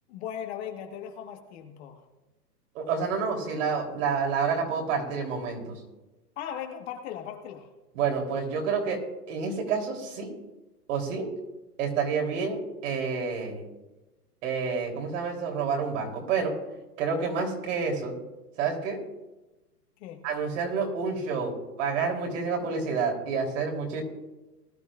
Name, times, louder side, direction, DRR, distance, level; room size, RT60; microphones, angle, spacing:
voice 1, 0.1-2.0 6.4-7.7 20.0-20.2, left 9 dB, 40° left, 4 dB, 1.5 m, -38 dB
voice 2, 2.8-5.8 7.9-9.0 9.3-10.3 10.9-11.3 11.8-13.6 14.4-16.5 17.0-18.1 18.6-19.0 20.2-21.5 21.8-24.0, right 5 dB, 50° right, 0 dB, 3.5 m, -29 dB
20.5 x 11.5 x 2.5 m, 1.1 s
hypercardioid pair, 140°, 48 cm